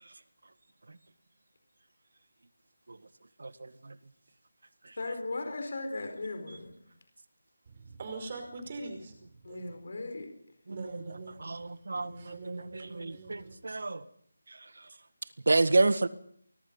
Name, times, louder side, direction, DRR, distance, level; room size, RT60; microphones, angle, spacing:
voice 1, 5.0-6.8 9.4-10.3, left 2 dB, 55° left, 5 dB, 4.8 m, -37 dB
voice 2, 7.7-9.8 10.7-13.5, right 3 dB, 30° right, 5 dB, 5.3 m, -44 dB
voice 3, 11.4-14.0 15.5-16.1, right 3 dB, 70° right, 14 dB, 1.7 m, -29 dB
25.0 x 21.0 x 5.6 m, 0.65 s
figure-of-eight pair, 175°, 0 cm